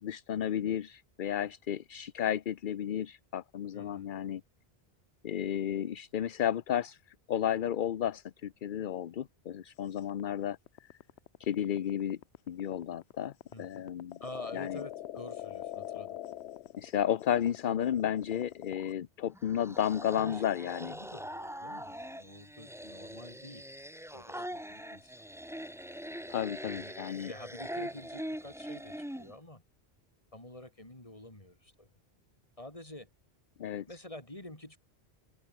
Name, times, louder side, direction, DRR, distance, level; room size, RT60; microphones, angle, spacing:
voice 1, 0.0-4.4 5.2-7.0 7.3-10.6 11.4-12.2 12.5-13.3 13.6-14.2 14.5-14.8 16.8-20.9 26.3-27.3 33.6-33.9, left 10 dB, 55° left, 0.8 m, -32 dB
voice 2, 3.7-4.1 13.5-13.8 14.2-16.2 20.1-20.4 20.8-23.7 24.1-25.1 26.6-27.0 27.3-29.6 30.3-31.9 32.6-33.1 33.9-34.8, left 1 dB, 30° left, 4.2 m, -48 dB
sound 1, 10.0-18.9, left 12 dB, 85° left, 0.9 m, -43 dB
sound 2, 19.3-29.3, equal, 5° right, 1.5 m, -42 dB
open air
omnidirectional pair, 1.1 m